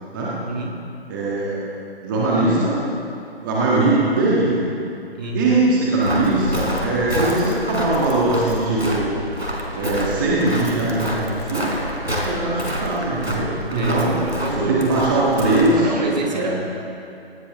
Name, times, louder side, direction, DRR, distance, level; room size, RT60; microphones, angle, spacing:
voice 1, 0.5-0.8 5.1-5.5 13.7-15.0 15.7-16.6, right 2 dB, 40° right, -1 dB, 2.4 m, -27 dB
voice 2, 1.1-1.6 2.0-2.8 3.4-4.6 5.3-9.1 9.7-14.1 14.6-16.6, right 2 dB, 20° right, -6 dB, 1.9 m, -21 dB
Walk footsteps, 6.0-15.8, equal, 85° right, 3.9 m, -28 dB
18.5 x 18.5 x 3.3 m, 2.6 s
figure-of-eight pair, 145°, 31 cm